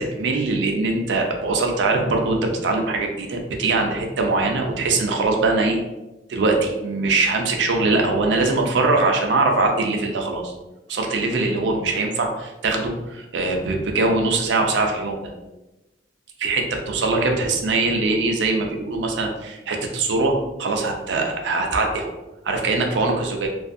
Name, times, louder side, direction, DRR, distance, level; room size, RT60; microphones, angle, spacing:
voice 1, 0.0-5.8 6.3-10.5 10.9-15.3 16.4-22.1 22.4-23.5, right 3 dB, 85° right, 2 dB, 0.4 m, -22 dB
2.5 x 2.4 x 2.5 m, 1.0 s
head